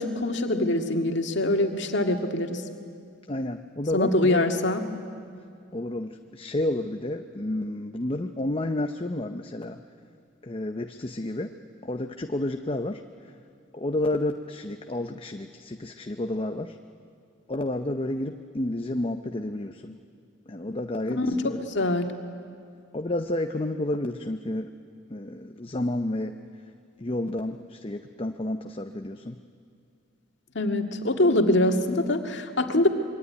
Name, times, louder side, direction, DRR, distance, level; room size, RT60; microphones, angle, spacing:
voice 1, 0.0-2.6 3.9-4.8 21.1-22.1 30.5-32.9, left 1 dB, 65° left, 4 dB, 2.1 m, -24 dB
voice 2, 3.3-4.5 5.7-9.8 10.4-11.5 11.8-13.0 13.7-16.8 17.5-20.0 20.5-21.6 22.9-24.7 25.1-26.3 27.0-29.4, left 1 dB, 30° left, 6 dB, 0.8 m, -30 dB
26.5 x 23.0 x 9.7 m, 2.3 s
head